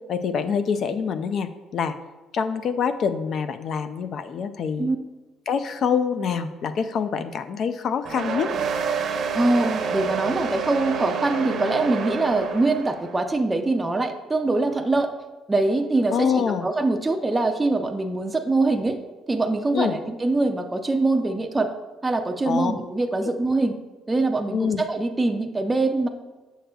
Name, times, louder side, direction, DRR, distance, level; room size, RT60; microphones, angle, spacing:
voice 1, 0.1-2.0 2.3-4.9 5.5-8.5 16.1-16.7 19.7-19.9 22.5-22.7 24.5-24.8, left 6 dB, 55° left, 10 dB, 0.4 m, -25 dB
sound 1, 8.0-13.1, right 5 dB, 55° right, 0.8 m, -28 dB
voice 2, 9.3-15.1 15.5-19.0 19.3-21.7 22.0-23.8 24.1-26.1, right 2 dB, 15° right, 5 dB, 0.5 m, -23 dB
7.8 x 6.4 x 2.3 m, 1.2 s
cardioid pair, 105°, 0 cm